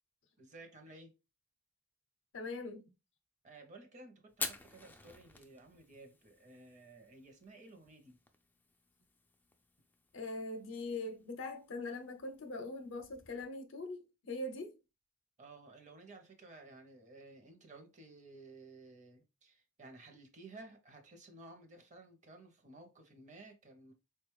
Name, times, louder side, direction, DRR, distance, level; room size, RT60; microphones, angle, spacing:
voice 1, 0.4-1.1 3.4-8.2 15.4-23.9, right 2 dB, 35° right, 0.7 m, -55 dB
voice 2, 2.3-2.9 10.1-14.8, left 2 dB, 65° left, 0.6 m, -42 dB
Fire, 4.3-13.5, left 3 dB, 10° left, 0.3 m, -50 dB
3.7 x 2.3 x 3.0 m
head